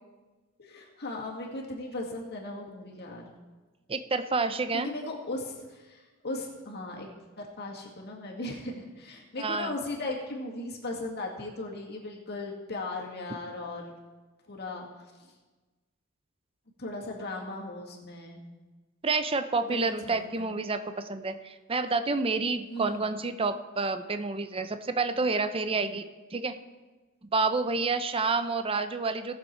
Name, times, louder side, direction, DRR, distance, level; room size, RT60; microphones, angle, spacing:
voice 1, 0.6-3.2 4.7-7.1 7.4-13.9 14.5-14.9 15.2-15.3 16.8-18.4 19.6-20.7 22.7-23.1, left 2 dB, 50° left, -1 dB, 2.0 m, -37 dB
voice 2, 3.9-4.9 9.4-9.7 19.0-26.0 26.3-26.5 27.3-29.4, right 3 dB, 25° right, 9 dB, 0.6 m, -29 dB
18.0 x 7.2 x 4.5 m, 1.3 s
head